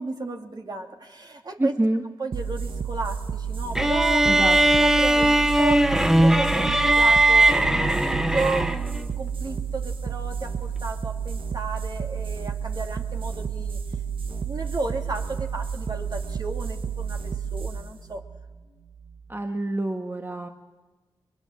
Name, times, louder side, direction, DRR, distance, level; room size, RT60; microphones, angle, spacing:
voice 1, 0.0-1.7 2.2-13.8 14.3-18.2, right 3 dB, 50° right, 3 dB, 2.8 m, -33 dB
voice 2, 1.6-2.0 4.3-4.6 19.3-20.5, right 1 dB, 25° right, 4 dB, 1.6 m, -26 dB
sound 1, 2.3-19.4, right 6 dB, 75° right, 1.2 m, -31 dB
sound 2, 3.8-9.0, right 1 dB, 5° right, 0.9 m, -19 dB
22.0 x 22.0 x 7.5 m, 1.3 s
cardioid pair, 45°, 9 cm